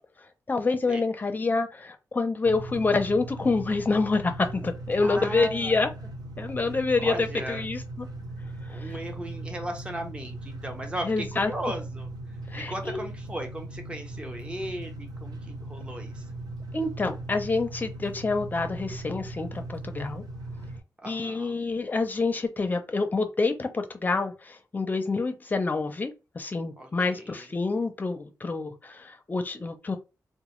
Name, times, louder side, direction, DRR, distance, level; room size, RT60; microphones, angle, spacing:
voice 1, 0.5-5.9 6.4-8.1 8.7-8.9 11.0-11.5 12.5-13.0 16.7-20.2 21.1-30.0, left 3 dB, 25° left, 0.5 m, -27 dB
sound 1, 2.4-20.8, right 1 dB, 85° right, 0.6 m, -39 dB
voice 2, 5.0-5.8 7.0-7.6 8.7-12.1 12.5-16.3 21.0-21.7 26.8-27.6, right 1 dB, 15° right, 0.6 m, -37 dB
3.9 x 2.1 x 3.0 m
wide cardioid pair, 155°, 7 cm